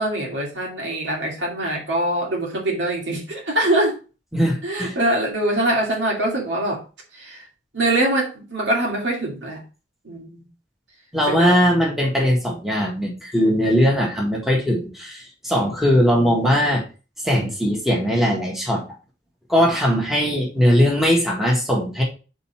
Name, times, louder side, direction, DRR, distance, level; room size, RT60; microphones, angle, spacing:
voice 1, 0.0-3.9 4.6-6.8 7.1-7.4 7.7-9.6 10.0-10.4 11.3-11.6, right 1 dB, 90° right, -1 dB, 2.6 m, -23 dB
voice 2, 4.3-4.9 11.1-16.8 17.2-18.8 19.5-22.0, equal, ahead, -2 dB, 1.6 m, -19 dB
4.4 x 4.1 x 5.7 m, 0.33 s
head